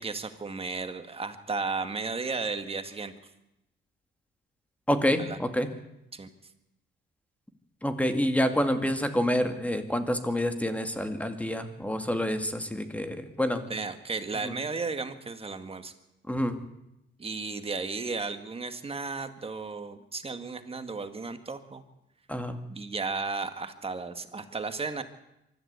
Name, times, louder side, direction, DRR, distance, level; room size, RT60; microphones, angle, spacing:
voice 1, 0.0-3.1 5.2-5.4 6.1-6.3 13.7-15.9 17.2-21.8 22.7-25.0, right 4 dB, 30° right, 9 dB, 1.8 m, -34 dB
voice 2, 4.9-5.7 7.8-13.6 14.4-14.5 16.3-16.6 22.3-22.6, equal, 5° left, 7 dB, 2.3 m, -28 dB
24.0 x 13.5 x 8.2 m, 0.89 s
cardioid pair, 90°, 20 cm